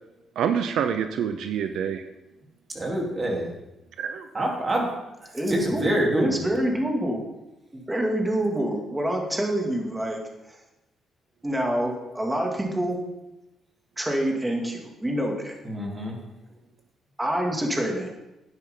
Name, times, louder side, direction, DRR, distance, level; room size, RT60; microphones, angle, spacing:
voice 1, 0.4-2.1 4.0-4.3, right 8 dB, 75° right, 8 dB, 0.7 m, -26 dB
voice 2, 2.7-3.5 4.3-6.5 15.6-16.2, right 1 dB, 30° right, -2 dB, 3.6 m, -27 dB
voice 3, 5.3-5.8 6.1-7.2 7.7-10.2 10.5-10.6 11.4-13.0 14.0-15.6 17.2-18.1, right 1 dB, 10° right, 0 dB, 2.5 m, -26 dB
12.0 x 9.9 x 3.9 m, 0.95 s
cardioid pair, 90°, 0 cm